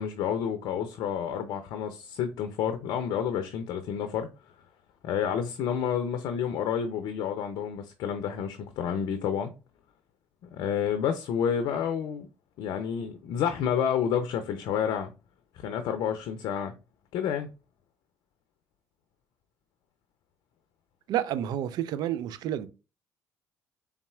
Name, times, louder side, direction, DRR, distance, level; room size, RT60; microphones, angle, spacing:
voice 1, 0.0-4.3 5.0-9.5 10.4-12.3 12.6-15.1 15.6-16.7 17.1-17.5, left 8 dB, 65° left, 0.5 m, -29 dB
voice 2, 21.1-22.7, right 11 dB, 65° right, 0.4 m, -30 dB
4.0 x 3.5 x 2.3 m
hypercardioid pair, 60°, 7 cm